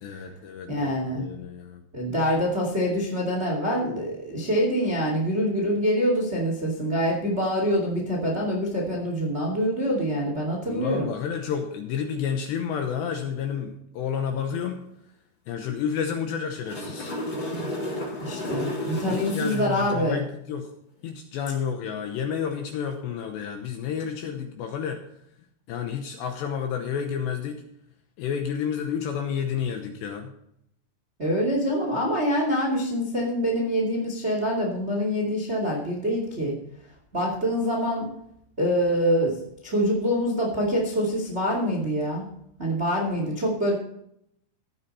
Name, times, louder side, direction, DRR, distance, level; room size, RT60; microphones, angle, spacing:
voice 1, 0.0-1.8 10.7-14.8 15.5-17.2 19.0-20.7 21.0-25.0 25.7-27.6 28.2-30.3, left 7 dB, 75° left, 5 dB, 2.6 m, -30 dB
voice 2, 0.7-1.3 1.9-11.1 18.2-20.2 31.2-36.5 37.1-38.1 38.6-42.3 42.6-43.7, equal, 45° right, -1 dB, 0.8 m, -25 dB
sound 1, 16.4-20.0 23.8-24.0, left 1 dB, 25° left, 3.5 m, -32 dB
15.0 x 9.0 x 4.2 m, 0.76 s
omnidirectional pair, 6.0 m